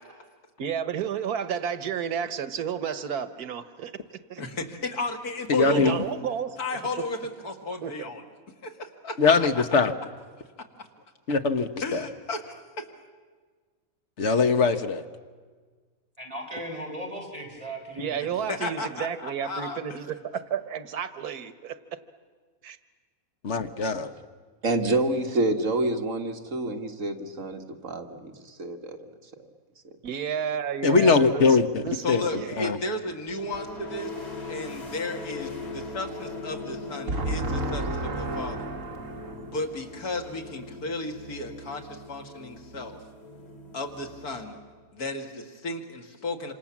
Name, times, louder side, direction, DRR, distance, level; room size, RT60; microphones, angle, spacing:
voice 1, 0.6-3.9 4.3-4.4 5.7-6.5 7.8-8.1 18.0-22.0 22.6-22.8 30.0-31.5 31.8-32.7, right 8 dB, 85° right, 12 dB, 1.6 m, -31 dB
voice 2, 4.4-6.0 6.6-8.2 8.6-9.6 11.8-12.9 18.5-19.8 32.0-34.1 34.5-38.7 39.4-43.0 43.7-44.6 44.9-46.5, left 2 dB, 90° left, 3 dB, 2.7 m, -34 dB
voice 3, 5.5-6.0 9.2-9.9 11.3-12.0 14.2-15.0 23.4-24.1 30.8-32.8, left 4 dB, 50° left, 8 dB, 1.4 m, -22 dB
voice 4, 16.2-18.5, right 1 dB, 25° right, 0 dB, 4.7 m, -38 dB
voice 5, 24.6-29.1 29.4-29.5 29.8-29.9 37.1-39.5, right 2 dB, 55° right, 3 dB, 2.0 m, -29 dB
sound 1, 33.3-44.8, left 2 dB, 65° left, 3.1 m, -40 dB
27.0 x 26.5 x 7.3 m, 1.5 s
omnidirectional pair, 1.6 m